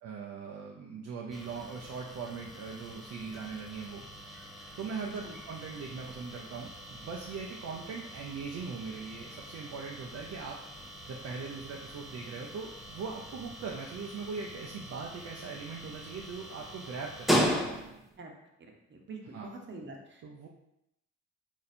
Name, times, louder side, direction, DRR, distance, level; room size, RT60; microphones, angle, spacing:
voice 1, 0.0-4.3 4.8-10.6 11.1-17.5 19.3-19.5 20.2-20.5, right 5 dB, 55° right, -1 dB, 0.6 m, -40 dB
sound 1, 1.3-18.2, equal, ahead, 0.5 m, -38 dB
voice 2, 18.6-20.2, right 3 dB, 40° right, 1 dB, 1.0 m, -46 dB
4.0 x 2.6 x 4.2 m, 0.83 s
cardioid pair, 90°, 30 cm